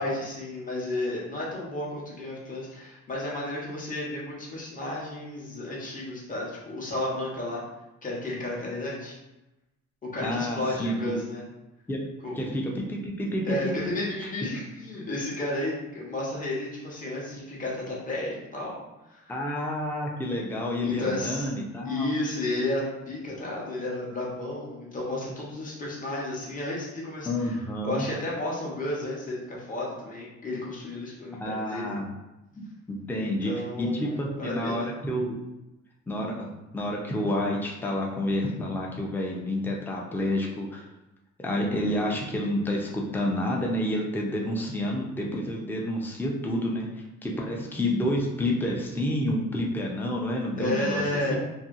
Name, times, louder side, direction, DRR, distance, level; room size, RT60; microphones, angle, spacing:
voice 1, 0.0-7.6 8.0-9.2 10.0-11.4 12.2-12.4 13.4-18.8 19.1-19.4 20.8-21.5 21.8-27.6 27.8-32.0 33.2-34.9 50.6-51.4, left 2 dB, 25° left, -5 dB, 1.0 m, -32 dB
voice 2, 10.2-11.2 11.9-12.0 12.4-13.7 19.3-22.1 27.3-28.0 31.4-32.1 32.5-32.6 32.9-33.5 33.8-35.3 36.1-40.8 41.4-46.9 47.2-51.0, left 1 dB, 5° left, -2 dB, 0.5 m, -29 dB
2.6 x 2.6 x 2.5 m, 0.97 s
cardioid pair, 90°, 30 cm